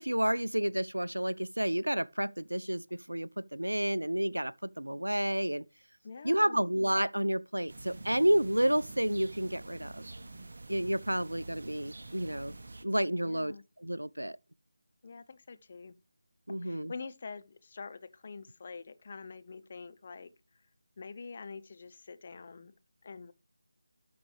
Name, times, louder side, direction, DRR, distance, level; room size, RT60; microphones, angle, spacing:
voice 1, 0.0-5.6 6.2-10.0 10.7-12.6 12.8-14.4 16.5-16.9, right 1 dB, 85° right, 0.4 m, -30 dB
voice 2, 6.0-6.6 13.2-13.6 15.0-15.9 16.5-20.3 21.0-22.7 23.0-23.3, left 4 dB, 35° left, 0.7 m, -46 dB
sound 1, 7.7-12.8, right 2 dB, 50° right, 0.9 m, -47 dB
12.0 x 5.9 x 3.3 m
figure-of-eight pair, 160°, 0 cm